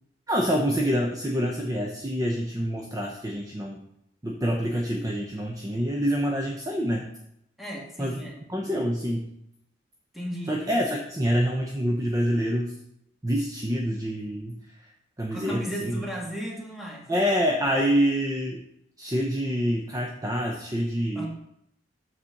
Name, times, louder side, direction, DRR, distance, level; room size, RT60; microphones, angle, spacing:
voice 1, 0.3-3.8 4.2-7.1 8.0-8.2 8.5-9.3 10.5-12.8 13.2-14.6 15.2-16.1 17.1-18.6 19.0-21.3, equal, 20° right, 0 dB, 0.7 m, -26 dB
voice 2, 7.6-8.4 10.1-10.6 15.3-17.1 21.1-21.3, equal, ahead, -3 dB, 1.6 m, -35 dB
7.2 x 4.2 x 6.4 m, 0.78 s
head